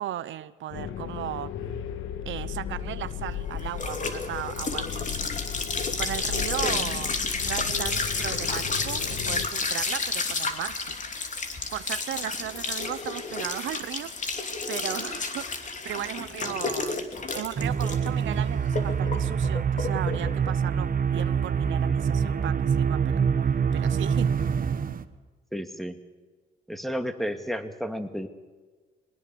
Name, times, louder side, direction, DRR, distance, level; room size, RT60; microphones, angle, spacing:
voice 1, 0.0-1.5 2.2-5.3 6.0-7.2 7.4-11.0 11.7-14.1 14.7-15.5 15.8-17.1 17.3-23.3 23.7-24.5, right 12 dB, 75° right, 14 dB, 0.8 m, -36 dB
sound 1, 0.7-9.5, left 8 dB, 80° left, 1.6 m, -36 dB
sound 2, 2.8-21.9, left 4 dB, 40° left, 3.0 m, -31 dB
sound 3, 17.6-25.0, right 7 dB, 45° right, 1.4 m, -25 dB
voice 2, 25.5-26.0 26.7-28.3, equal, ahead, 7 dB, 2.1 m, -32 dB
22.0 x 19.5 x 6.9 m, 1.4 s
cardioid pair, 90°, 20 cm